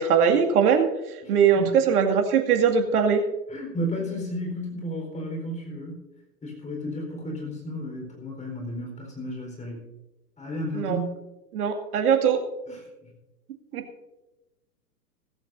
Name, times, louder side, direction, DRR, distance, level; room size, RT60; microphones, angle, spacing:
voice 1, 0.0-3.2 10.7-11.0 11.5-12.4 13.7-13.8, right 7 dB, 60° right, 4 dB, 2.3 m, -21 dB
voice 2, 1.2-1.8 3.5-6.0 6.4-9.9 10.4-11.2 12.7-13.1, equal, 15° left, 1 dB, 4.4 m, -33 dB
16.5 x 15.0 x 2.7 m, 1.0 s
hypercardioid pair, 115°, 50 cm